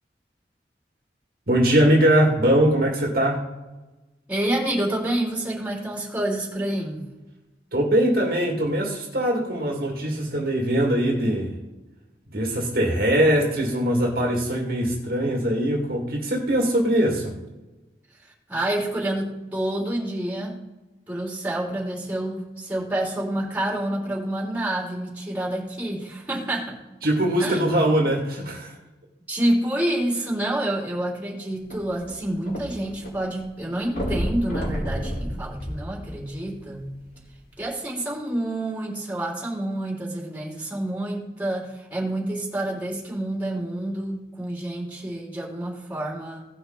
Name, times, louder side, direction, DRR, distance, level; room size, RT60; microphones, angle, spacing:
voice 1, 1.5-3.4 7.7-11.5 12.3-17.4 27.0-28.7, right 1 dB, 55° right, 0 dB, 2.3 m, -21 dB
voice 2, 4.3-7.0 18.2-20.6 21.1-26.8 27.4-27.6 29.3-36.9 37.6-46.4, right 1 dB, 10° right, -4 dB, 3.4 m, -28 dB
sound 1, 31.6-33.1 33.4-33.5 33.9-36.5 37.2-37.3, equal, 55° left, 3.9 m, -30 dB
18.0 x 6.1 x 3.9 m, 1.1 s
head